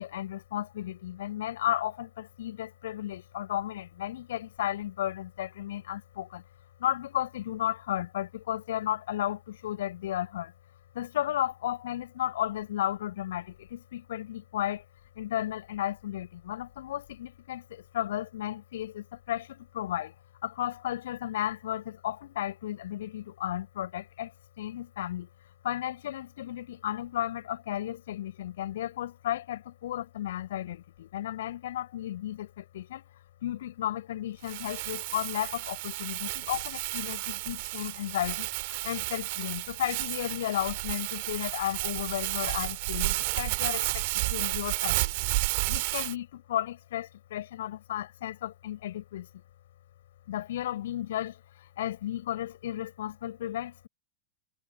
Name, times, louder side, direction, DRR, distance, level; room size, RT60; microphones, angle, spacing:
voice 1, 0.0-6.4 6.8-10.5 10.9-14.8 15.2-20.1 20.4-25.3 25.6-33.0 33.4-45.3 45.7-49.4 50.3-53.9, left 12 dB, 60° left, 6.1 m, -34 dB
Crumpling crinkling, 34.4-46.1, right 24 dB, 50° right, 2.3 m, -32 dB
figure-of-eight pair, 90°, 0 cm